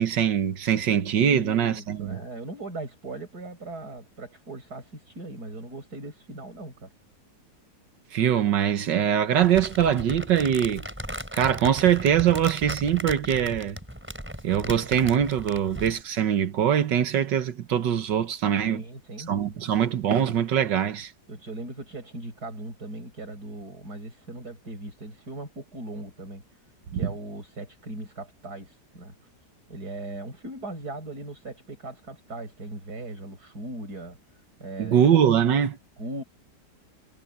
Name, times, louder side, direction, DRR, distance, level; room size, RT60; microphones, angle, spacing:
voice 1, 0.0-2.2 8.1-10.9 11.3-13.8 14.4-18.8 19.3-21.1 26.9-27.0 34.8-35.8, right 9 dB, 80° right, 1.8 m, -23 dB
voice 2, 1.2-6.9 18.6-19.6 21.3-26.6 26.9-29.1 29.7-34.2 34.6-35.2 36.0-36.2, right 2 dB, 60° right, 8.0 m, -39 dB
Crumpling crinkling, 9.4-16.0, equal, 5° right, 4.7 m, -37 dB
omnidirectional pair, 1.9 m